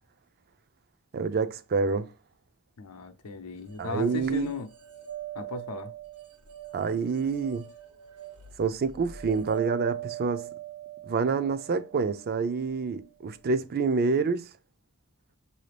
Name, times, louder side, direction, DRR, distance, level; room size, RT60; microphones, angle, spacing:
voice 1, 1.1-2.1 3.8-4.5 6.7-7.6 8.6-10.5 11.1-14.5, right 4 dB, 45° right, 0.4 m, -27 dB
voice 2, 2.8-4.7 5.3-5.9, left 4 dB, 90° left, 0.6 m, -36 dB
sound 1, 3.7-12.8, right 12 dB, 85° right, 1.1 m, -42 dB
5.7 x 2.7 x 3.2 m
head